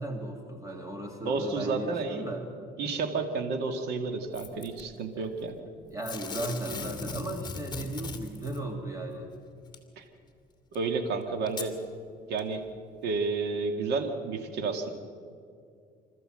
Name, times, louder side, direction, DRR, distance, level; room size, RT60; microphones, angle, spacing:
voice 1, 0.0-2.5 5.2-5.3 5.9-9.3, right 1 dB, 20° right, 3 dB, 2.4 m, -36 dB
voice 2, 1.2-2.3 2.8-5.5 10.0-10.1 10.7-11.8 12.3-12.7 13.0-14.9, right 4 dB, 75° right, 5 dB, 2.1 m, -31 dB
Packing tape duct tape / Tearing, 4.3-4.8 6.0-8.6 9.7-9.8 10.7-10.8 11.5-11.7 12.4-12.5, left 4 dB, 25° left, 2.3 m, -38 dB
26.5 x 14.0 x 7.8 m, 2.3 s
cardioid pair, 110°, 17 cm